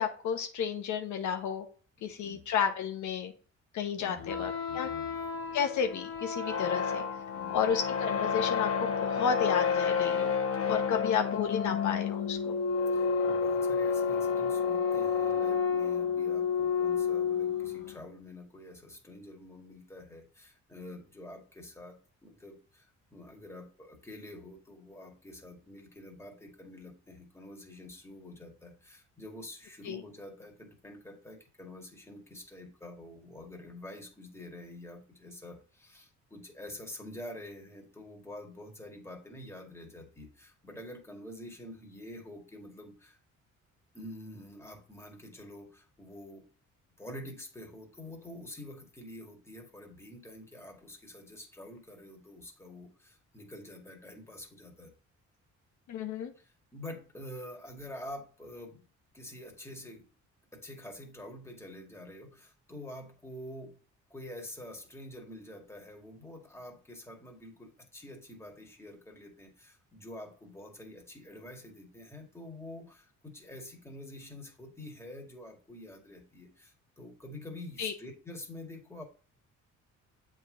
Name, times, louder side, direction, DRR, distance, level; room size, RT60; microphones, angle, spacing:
voice 1, 0.0-1.7 2.0-3.3 3.7-4.9 5.5-7.0 7.5-10.3 10.7-12.6 29.8-30.0 55.9-56.3 77.8-77.9, left 7 dB, 75° left, 5 dB, 0.9 m, -32 dB
voice 2, 2.1-2.4 3.9-5.1 7.3-7.7 12.9-43.2 43.9-46.4 47.0-54.9 56.4-58.8 59.1-60.1 60.5-63.8 64.1-79.0, left 1 dB, 10° left, 1 dB, 1.7 m, -47 dB
sound 1, 4.2-18.0, left 6 dB, 50° left, 1.0 m, -30 dB
7.5 x 3.9 x 3.8 m, 0.40 s
cardioid pair, 90°, 30 cm